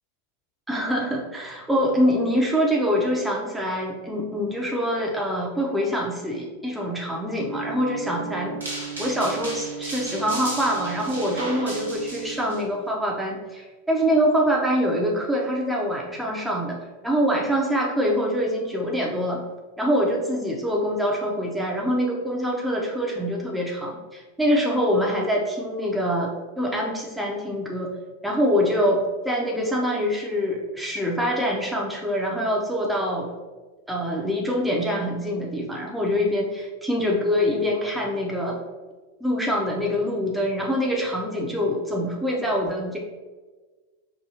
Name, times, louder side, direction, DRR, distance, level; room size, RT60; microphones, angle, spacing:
voice 1, 0.7-16.8 17.0-19.4 19.8-27.9 28.2-33.3 33.9-38.6 39.2-43.0, equal, 5° right, -2 dB, 0.6 m, -25 dB
sound 1, 7.4-12.5, right 8 dB, 50° right, 0.4 m, -37 dB
sound 2, 8.6-12.6, right 1 dB, 75° right, 1.1 m, -35 dB
4.9 x 2.6 x 2.8 m, 1.3 s
figure-of-eight pair, 90°, 0 cm